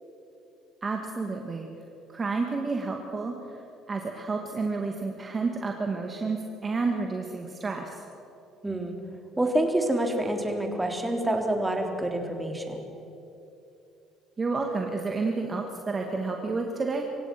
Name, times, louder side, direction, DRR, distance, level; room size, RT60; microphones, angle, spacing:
voice 1, 0.8-1.7 2.1-3.6 3.9-8.0 14.4-17.1, right 3 dB, 35° right, 2 dB, 2.1 m, -30 dB
voice 2, 8.6-9.0 9.4-12.9, right 1 dB, 15° right, 3 dB, 3.6 m, -27 dB
26.5 x 16.0 x 6.2 m, 2.9 s
hypercardioid pair, 60°, 0 cm